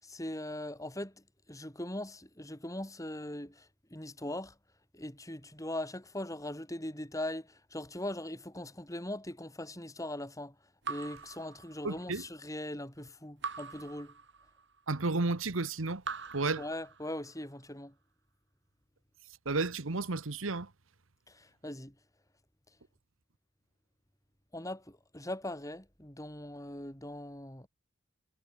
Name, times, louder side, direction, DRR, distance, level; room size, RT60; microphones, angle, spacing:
voice 1, 0.0-1.1 1.5-3.7 3.9-4.5 4.9-10.5 10.9-14.1 16.6-17.9 21.3-21.9 24.5-27.7, left 1 dB, 15° left, 6.4 m, -40 dB
Raindrop / Drip, 10.8-12.2 13.4-14.8 16.0-17.4, right 5 dB, 60° right, 4.4 m, -43 dB
voice 2, 11.8-12.2 14.9-16.0 16.3-16.6 19.4-20.7, right 3 dB, 90° right, 1.4 m, -32 dB
head